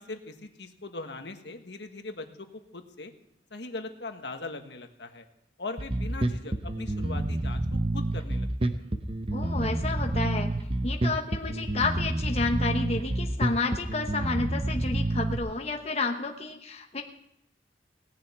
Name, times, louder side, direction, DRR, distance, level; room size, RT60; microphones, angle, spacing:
voice 1, 0.0-2.5 2.7-3.1 3.5-5.2 5.6-7.6 7.9-8.8, left 2 dB, 75° left, 5 dB, 1.5 m, -40 dB
Bass guitar, 5.8-15.4, right 1 dB, 30° right, 0.9 m, -28 dB
voice 2, 9.3-10.5 10.8-17.0, left 3 dB, 35° left, 3 dB, 1.1 m, -30 dB
18.5 x 7.2 x 9.5 m, 0.79 s
head